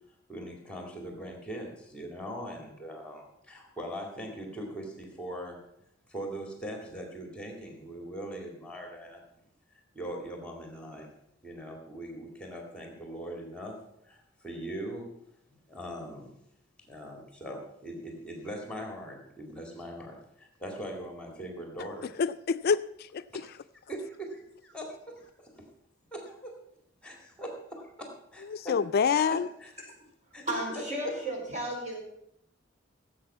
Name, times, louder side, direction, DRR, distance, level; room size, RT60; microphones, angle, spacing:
voice 1, 0.3-5.6 6.1-9.2 9.9-11.1 11.4-15.1 15.7-16.4 16.8-22.1 23.3-23.4 23.9-25.6 26.1-26.6 27.0-29.7 30.3-30.6, equal, 5° left, 2 dB, 2.1 m, -41 dB
voice 2, 22.2-23.2 28.5-29.5, left 6 dB, 55° left, 13 dB, 0.4 m, -26 dB
voice 3, 30.4-32.0, right 1 dB, 40° right, -2 dB, 4.9 m, -33 dB
16.0 x 7.9 x 5.5 m, 0.77 s
head